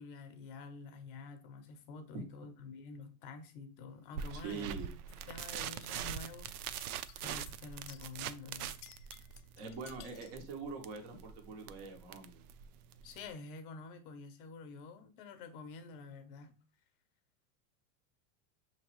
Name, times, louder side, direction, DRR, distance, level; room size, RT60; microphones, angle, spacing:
voice 1, 0.0-4.8 5.3-6.5 7.2-8.8 13.0-16.5, left 4 dB, 40° left, 0.6 m, -48 dB
sound 1, 4.2-13.3, right 9 dB, 75° right, 0.5 m, -43 dB
voice 2, 4.4-4.9 9.6-12.4, right 4 dB, 25° right, 0.4 m, -43 dB
sound 2, 5.1-10.4, left 8 dB, 80° left, 0.6 m, -57 dB
6.1 x 2.9 x 2.9 m
supercardioid pair, 175°, 44 cm